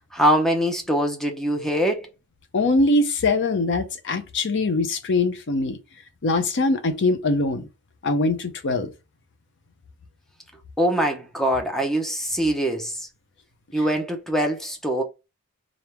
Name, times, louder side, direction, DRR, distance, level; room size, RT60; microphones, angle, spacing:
voice 1, 0.1-2.1 10.8-13.1 13.7-15.0, right 1 dB, ahead, 0.7 m, -23 dB
voice 2, 2.5-5.8 6.2-7.7 8.0-8.9, left 2 dB, 60° left, 0.6 m, -22 dB
3.4 x 2.5 x 4.4 m
head